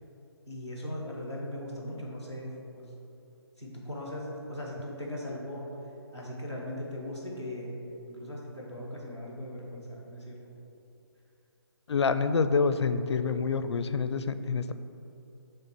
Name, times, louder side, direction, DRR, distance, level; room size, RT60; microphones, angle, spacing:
voice 1, 0.5-2.9 3.6-5.7 6.1-7.7 8.1-10.5, left 1 dB, 10° right, -8 dB, 0.7 m, -39 dB
voice 2, 11.9-14.7, left 5 dB, 85° left, 11 dB, 0.4 m, -27 dB
6.9 x 3.3 x 5.9 m, 2.8 s
hypercardioid pair, 180°, 14 cm